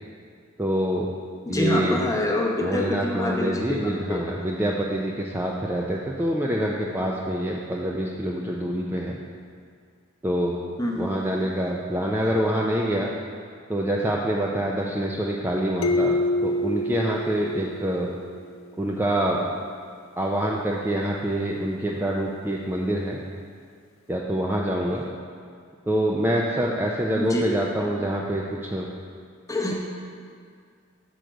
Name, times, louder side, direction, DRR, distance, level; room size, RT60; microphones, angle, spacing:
voice 1, 0.6-1.1 1.5-2.0 2.6-9.2 10.2-10.5 11.0-13.1 13.7-16.2 16.4-18.1 18.8-19.5 20.2-23.2 24.1-25.0 25.9-28.9, right 1 dB, 10° right, -3 dB, 0.4 m, -26 dB
voice 2, 1.5-4.2 10.8-11.2 27.2-27.5 29.5-29.7, left 1 dB, 15° left, -2 dB, 0.8 m, -26 dB
sound 1, 15.8-18.4, left 1 dB, 70° left, 0.4 m, -26 dB
6.3 x 5.1 x 4.5 m, 2.1 s
head